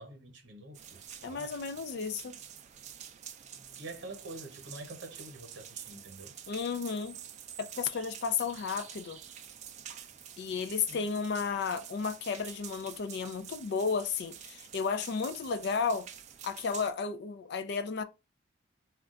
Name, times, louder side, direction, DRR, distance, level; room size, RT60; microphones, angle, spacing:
voice 1, 0.0-1.7 3.8-6.4 10.7-11.1, right 2 dB, 70° right, 0.9 m, -47 dB
sound 1, 0.7-16.9, right 9 dB, 40° right, 0.3 m, -48 dB
voice 2, 1.2-2.3 6.5-7.2 7.6-9.2 10.4-16.1 16.4-18.0, left 5 dB, 60° left, 0.4 m, -33 dB
2.3 x 2.2 x 3.7 m
head